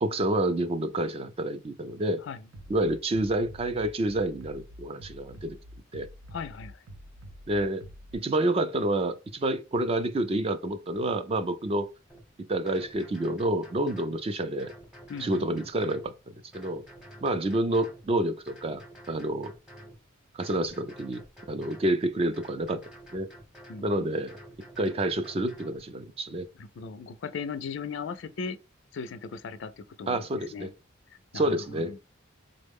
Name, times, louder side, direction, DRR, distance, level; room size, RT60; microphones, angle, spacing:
voice 1, 0.0-2.2 2.7-5.6 5.9-6.1 7.5-7.8 8.1-11.9 12.5-14.7 15.2-16.1 16.5-16.8 17.2-19.5 20.3-21.2 21.5-22.8 23.1-23.3 23.8-24.4 24.8-26.5 30.1-30.7 31.3-32.0, right 1 dB, 30° right, 0.3 m, -28 dB
Bass drum, 2.5-8.1, equal, 80° right, 0.5 m, -47 dB
voice 2, 6.3-6.8 15.1-15.6 23.7-24.1 26.6-28.6 28.9-30.7 31.3-32.0, left 5 dB, 65° left, 0.4 m, -38 dB
sound 1, 12.1-12.2 12.7-14.2 14.6-16.1 16.5-18.1 18.5-20.0 20.4-21.9 22.3-23.9 24.3-25.8, right 1 dB, 5° right, 0.8 m, -49 dB
3.8 x 2.1 x 3.4 m
head